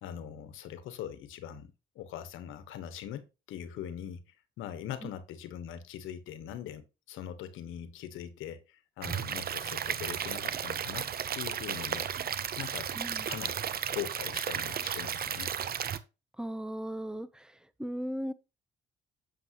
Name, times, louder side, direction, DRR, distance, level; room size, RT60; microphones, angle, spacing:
voice 1, 0.0-4.2 4.6-11.1 11.3-12.1 12.6-13.0 13.3-13.6 13.9-15.5, left 10 dB, 90° left, 1.2 m, -42 dB
Stream / Liquid, 9.0-16.0, right 8 dB, 50° right, 0.8 m, -34 dB
voice 2, 12.9-13.3 16.4-18.3, equal, 5° right, 0.8 m, -37 dB
8.0 x 7.2 x 3.0 m
cardioid pair, 90°, 20 cm